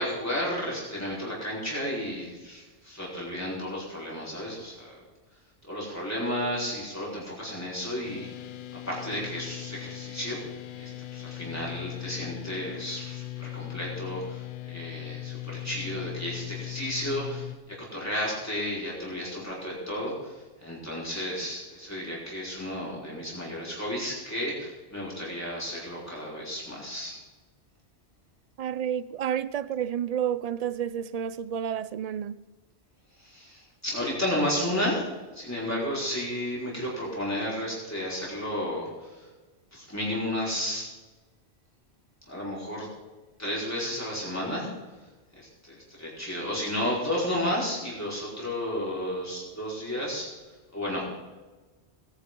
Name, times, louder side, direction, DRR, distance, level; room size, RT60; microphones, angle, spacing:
voice 1, 0.0-4.9 5.6-8.3 8.7-10.4 10.8-27.2 33.2-39.3 39.7-40.9 42.3-42.9 43.4-44.7 45.4-50.3 50.7-51.2, left 1 dB, 15° left, 4.8 m, -32 dB
sound 1, 8.0-17.6, left 16 dB, 55° left, 0.7 m, -39 dB
voice 2, 28.6-32.3, right 9 dB, 60° right, 0.4 m, -30 dB
20.0 x 10.0 x 3.8 m
omnidirectional pair, 1.1 m